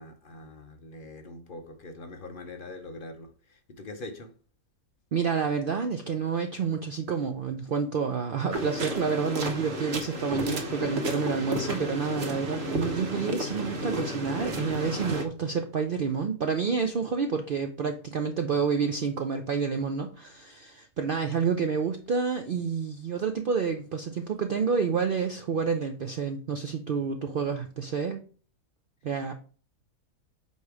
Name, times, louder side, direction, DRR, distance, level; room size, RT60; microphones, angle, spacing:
voice 1, 0.0-4.3, left 2 dB, 45° left, 0.7 m, -43 dB
voice 2, 5.1-28.2 29.0-29.3, right 5 dB, 85° right, 0.4 m, -29 dB
sound 1, 8.5-15.3, equal, 45° right, 1.2 m, -32 dB
8.2 x 3.2 x 4.7 m
omnidirectional pair, 1.7 m